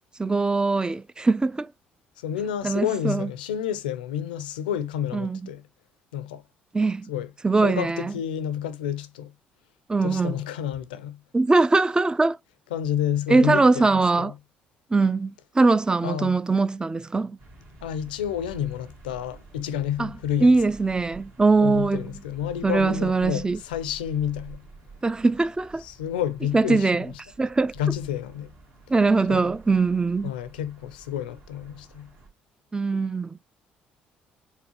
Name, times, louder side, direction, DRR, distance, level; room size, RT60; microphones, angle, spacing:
voice 1, 0.2-1.7 2.6-3.3 5.1-5.5 6.7-7.1 7.4-8.1 9.9-10.4 11.3-12.4 13.3-14.3 14.9-17.4 20.0-22.2 22.6-23.6 25.0-25.8 26.5-27.1 27.4-27.7 28.9-30.3 32.7-33.4, right 3 dB, 15° right, 0.4 m, -22 dB
voice 2, 2.2-5.6 6.1-6.4 7.1-7.3 7.6-9.3 10.0-11.2 12.7-13.6 13.9-14.3 16.0-16.3 17.8-20.5 21.6-24.6 25.8-26.9 27.8-28.5 29.3-29.4 30.2-32.1, left 10 dB, 85° left, 0.4 m, -29 dB
sound 1, 17.4-32.3, right 3 dB, 60° right, 1.7 m, -49 dB
4.7 x 3.3 x 2.8 m
hypercardioid pair, 50°, 5 cm